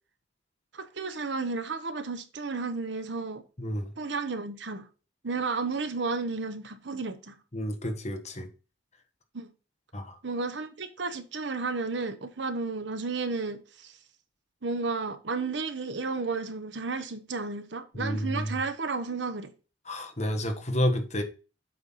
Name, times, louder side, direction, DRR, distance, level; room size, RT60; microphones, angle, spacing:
voice 1, 0.7-3.4 4.0-4.9 5.2-7.4 9.3-9.5 10.2-13.9 14.6-19.5, right 4 dB, 65° right, 0.9 m, -32 dB
voice 2, 3.6-3.9 7.5-8.5 9.9-10.2 17.9-18.5 19.8-21.2, equal, 35° left, 1.3 m, -30 dB
7.8 x 4.1 x 5.7 m
head